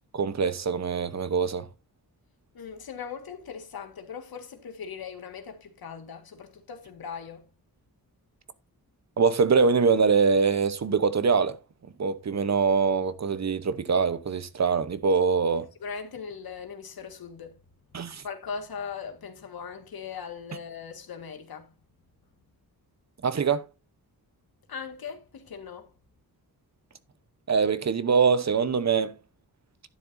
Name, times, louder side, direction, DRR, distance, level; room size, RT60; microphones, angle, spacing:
voice 1, 0.1-1.7 9.2-11.6 12.0-15.7 17.9-18.2 23.2-23.7 27.5-29.1, right 5 dB, 50° right, 1.0 m, -23 dB
voice 2, 2.5-7.4 15.8-17.6 18.2-21.7 24.7-25.9, left 6 dB, 80° left, 1.9 m, -39 dB
11.5 x 10.0 x 2.7 m
wide cardioid pair, 115°, 36 cm